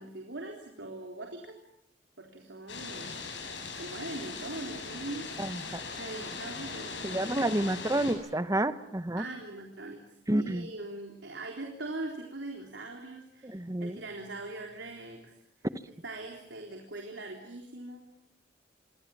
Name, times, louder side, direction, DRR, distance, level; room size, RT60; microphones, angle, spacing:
voice 1, 0.0-1.6 2.2-3.2 3.8-5.5 6.0-7.3 9.2-10.0 10.4-15.3 16.0-18.0, right 2 dB, 90° right, 2 dB, 4.0 m, -41 dB
sound 1, 2.7-8.1, left 4 dB, 85° left, 8.0 m, -40 dB
voice 2, 5.4-5.8 7.0-9.2 10.3-10.7 13.4-14.0, right 1 dB, 20° right, 12 dB, 1.0 m, -29 dB
27.5 x 24.5 x 7.3 m, 0.74 s
head